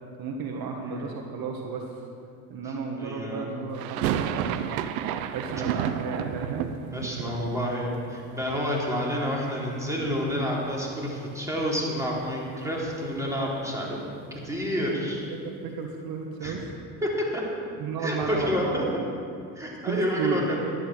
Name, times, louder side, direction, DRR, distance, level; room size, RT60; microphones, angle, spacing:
voice 1, 0.2-2.0 2.5-4.7 5.3-7.4 13.2-13.6 14.0-14.1 14.9-15.0 15.3-16.6 17.8-19.1 19.8-20.5, right 5 dB, 55° right, 2 dB, 1.5 m, -33 dB
voice 2, 2.7-3.5 6.9-14.0 14.4-15.2 16.4-16.5 17.0-17.4 18.0-18.8 19.6-20.6, equal, 5° right, -4 dB, 3.8 m, -29 dB
sound 1, 3.7-9.7 9.9-10.8 11.1-11.2 11.4-13.6, right 9 dB, 90° right, 0.7 m, -33 dB
12.0 x 10.5 x 6.3 m, 2.5 s
supercardioid pair, 85°, 41 cm